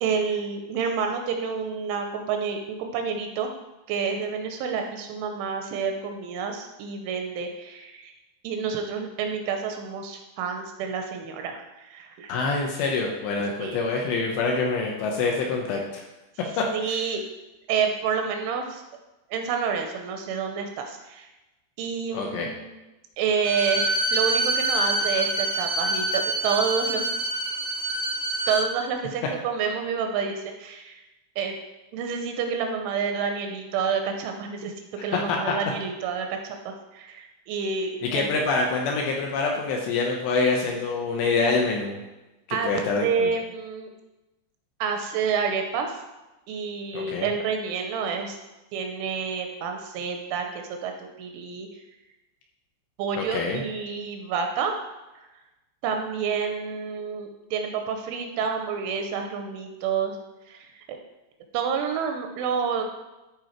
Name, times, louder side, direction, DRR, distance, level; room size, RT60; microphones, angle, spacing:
voice 1, 0.0-3.5 3.9-8.1 8.4-12.3 13.6-13.8 16.7-17.2 17.7-18.8 19.3-21.3 21.8-22.7 23.2-27.1 28.5-31.0 31.4-31.6 31.9-34.7 35.0-38.3 42.5-42.7 43.0-43.9 44.8-45.9 46.5-48.4 48.7-51.7 53.0-54.7 55.2-55.3 55.8-60.2 60.5-61.0 61.5-62.8, right 6 dB, 80° right, 4 dB, 3.0 m, -29 dB
voice 2, 12.3-16.0 16.6-17.0 22.1-22.5 35.3-35.5 38.0-42.0 42.5-43.3 46.9-47.3 53.2-53.6, left 4 dB, 75° left, 0 dB, 2.8 m, -26 dB
Bowed string instrument, 23.4-28.6, right 2 dB, 10° left, 0.6 m, -26 dB
13.0 x 4.6 x 4.5 m, 1.0 s
omnidirectional pair, 5.8 m